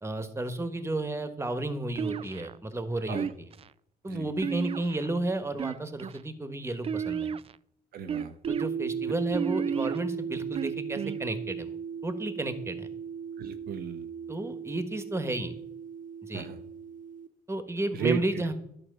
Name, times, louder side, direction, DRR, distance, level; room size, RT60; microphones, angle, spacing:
voice 1, 0.0-3.5 4.0-7.3 8.5-11.7 12.0-12.9 14.3-15.5 16.2-16.5 17.5-18.5, right 2 dB, 15° right, 9 dB, 1.4 m, -32 dB
sound 1, 2.0-2.6 3.1-3.7 4.4-5.1 5.5-6.2 6.8-7.5 8.1-8.7 9.3-10.0 10.5-11.2, right 7 dB, 35° right, 0.4 m, -32 dB
voice 2, 7.9-8.3 13.4-14.1 16.3-16.6 17.9-18.2, right 8 dB, 75° right, 7 dB, 0.8 m, -33 dB
sound 2, 8.4-17.3, right 7 dB, 55° right, 1.0 m, -36 dB
11.0 x 4.2 x 6.8 m, 0.72 s
supercardioid pair, 60°, 16 cm